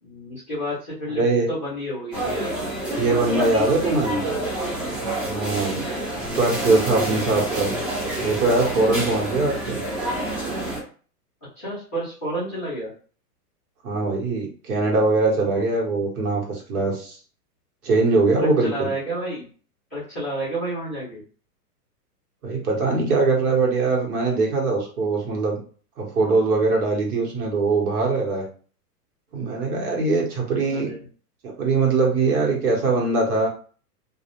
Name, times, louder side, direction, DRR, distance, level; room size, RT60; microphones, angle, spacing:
voice 1, 0.0-1.2 1.5-2.5 11.5-12.9 18.6-19.4 19.9-21.2 30.6-31.0, right 1 dB, 10° left, -17 dB, 0.4 m, -30 dB
voice 2, 1.1-1.5 3.0-4.2 5.2-5.8 6.3-7.7 8.2-9.8 13.8-17.2 17.8-18.9 22.4-25.6 26.0-28.5 29.3-30.9 31.4-33.5, right 3 dB, 70° right, -1 dB, 1.3 m, -22 dB
sound 1, 2.1-10.8, right 1 dB, 20° right, 0.8 m, -28 dB
2.4 x 2.1 x 2.9 m, 0.41 s
hypercardioid pair, 160°, 47 cm